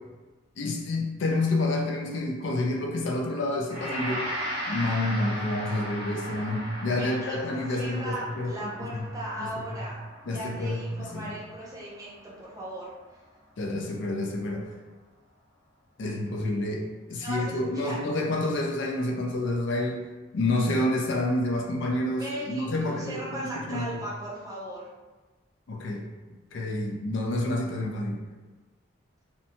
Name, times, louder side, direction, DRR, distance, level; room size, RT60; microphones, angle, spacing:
voice 1, 0.6-4.3 4.7-9.1 9.4-9.6 10.3-11.4 13.6-14.7 16.0-20.0 20.3-24.0 25.7-26.0 26.5-28.2, left 2 dB, 65° left, 0 dB, 0.4 m, -29 dB
Gong, 3.7-12.9, equal, 25° left, 0.7 m, -37 dB
voice 2, 6.9-10.0 10.3-12.9 17.2-18.0 22.1-24.9, right 1 dB, 15° right, -6 dB, 0.6 m, -37 dB
2.7 x 2.1 x 2.8 m, 1.2 s
head